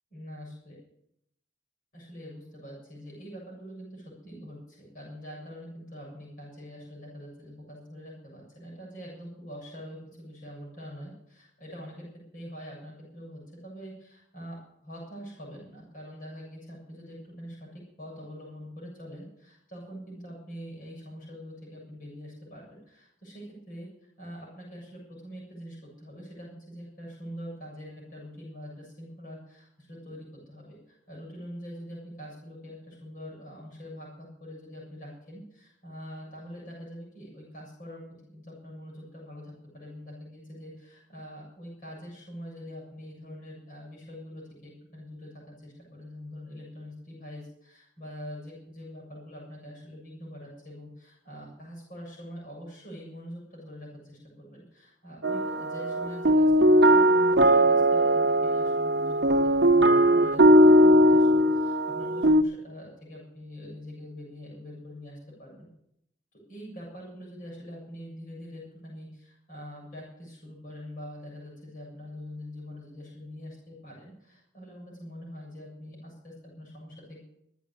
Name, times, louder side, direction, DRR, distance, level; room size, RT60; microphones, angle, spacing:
voice 1, 0.1-0.8 1.9-14.6 14.8-23.9 24.2-38.0 38.3-65.7 66.3-77.2, equal, 45° left, -3 dB, 7.4 m, -44 dB
sound 1, 55.2-62.4, equal, 60° right, 0.9 m, -20 dB
12.5 x 9.3 x 8.7 m, 0.77 s
head